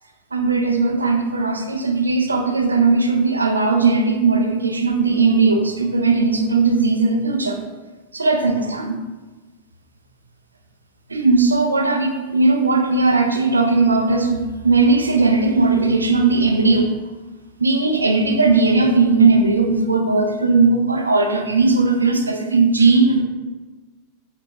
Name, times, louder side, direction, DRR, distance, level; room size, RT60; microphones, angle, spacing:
voice 1, 0.3-7.6 8.1-8.9 11.1-16.9 17.6-23.2, right 3 dB, 80° right, 4 dB, 0.4 m, -17 dB
4.3 x 3.7 x 2.3 m, 1.2 s
figure-of-eight pair, 90°, 0 cm